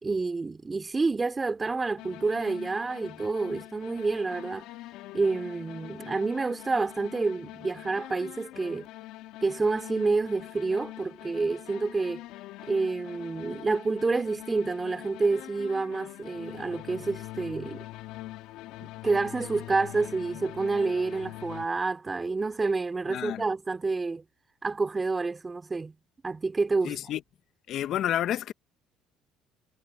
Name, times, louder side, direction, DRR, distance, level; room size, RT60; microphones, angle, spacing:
voice 1, 0.0-4.6 5.1-8.9 9.4-12.2 12.7-17.8 18.8-24.2 24.6-25.9 26.2-27.0, right 3 dB, 25° right, 3.1 m, -28 dB
sound 1, 2.0-21.7, left 16 dB, 75° left, 2.0 m, -44 dB
voice 2, 23.1-23.4 26.8-27.2 27.7-28.5, left 11 dB, 60° left, 1.3 m, -29 dB
supercardioid pair, 85°, 0 cm